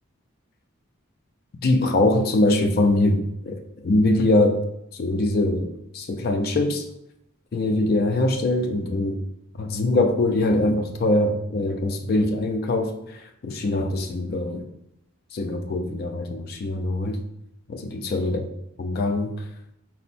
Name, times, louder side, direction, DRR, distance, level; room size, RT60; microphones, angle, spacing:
voice 1, 1.6-4.6 4.9-6.8 7.5-9.2 9.6-14.6 15.3-17.2 17.7-18.4 18.8-19.3, left 2 dB, 45° left, 6 dB, 0.3 m, -23 dB
4.4 x 2.1 x 4.1 m, 0.80 s
head